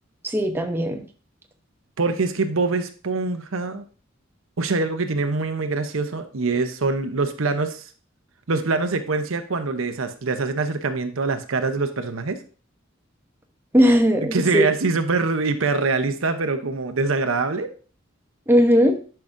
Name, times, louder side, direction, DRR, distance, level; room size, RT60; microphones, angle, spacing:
voice 1, 0.2-1.0 13.7-14.6 18.5-19.0, equal, 10° right, 4 dB, 0.8 m, -18 dB
voice 2, 2.0-3.8 4.6-7.8 8.5-12.4 14.3-17.7, right 3 dB, 85° right, 8 dB, 0.8 m, -24 dB
10.5 x 5.7 x 2.6 m, 0.40 s
head